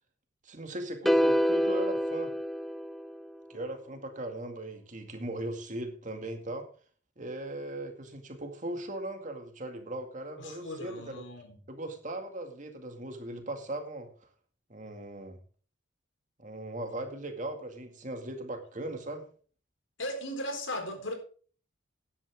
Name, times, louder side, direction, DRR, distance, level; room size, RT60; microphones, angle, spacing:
voice 1, 0.4-2.3 3.5-6.7 7.2-11.2 11.7-14.1 14.7-15.4 16.4-19.2, right 1 dB, 40° right, 2.1 m, -38 dB
sound 1, 1.1-3.4, equal, ahead, 0.5 m, -27 dB
voice 2, 10.4-11.5 20.0-21.1, left 1 dB, 70° left, 4.0 m, -37 dB
13.5 x 10.5 x 3.6 m
head